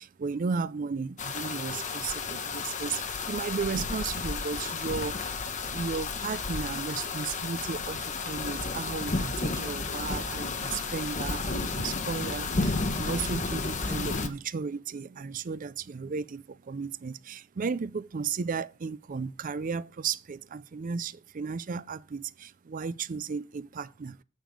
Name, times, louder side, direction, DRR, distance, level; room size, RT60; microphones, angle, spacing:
voice 1, 0.0-5.4 5.7-24.2, right 5 dB, 40° right, 0.4 m, -34 dB
sound 1, 1.2-14.3, left 3 dB, 35° left, 1.0 m, -32 dB
9.3 x 6.7 x 5.2 m
head